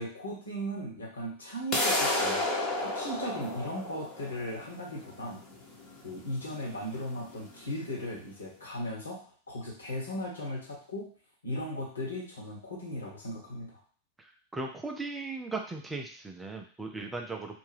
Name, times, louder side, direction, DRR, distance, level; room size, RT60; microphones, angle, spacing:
voice 1, 0.0-2.4 2.8-5.4 6.0-11.1 11.4-13.8 17.0-17.1, equal, 75° left, -4 dB, 1.1 m, -37 dB
sound 1, 1.7-7.7, left 2 dB, 35° left, 0.9 m, -32 dB
voice 2, 14.5-17.6, right 3 dB, 10° right, 3 dB, 0.4 m, -37 dB
2.5 x 2.2 x 3.3 m, 0.44 s
figure-of-eight pair, 90°, 0 cm